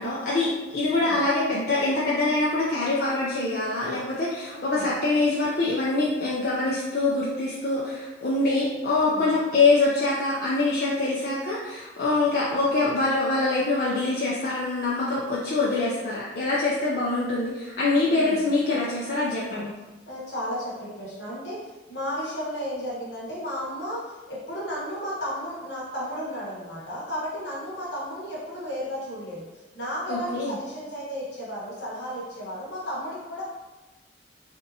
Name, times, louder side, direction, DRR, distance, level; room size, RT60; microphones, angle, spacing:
voice 1, 0.0-19.7 30.1-30.5, left 3 dB, 55° left, -6 dB, 0.5 m, -24 dB
voice 2, 0.9-1.2 4.5-4.9 8.8-9.3 17.9-18.4 19.5-19.6 20.0-33.4, equal, 70° left, -6 dB, 1.1 m, -34 dB
3.4 x 2.7 x 2.7 m, 1.1 s
head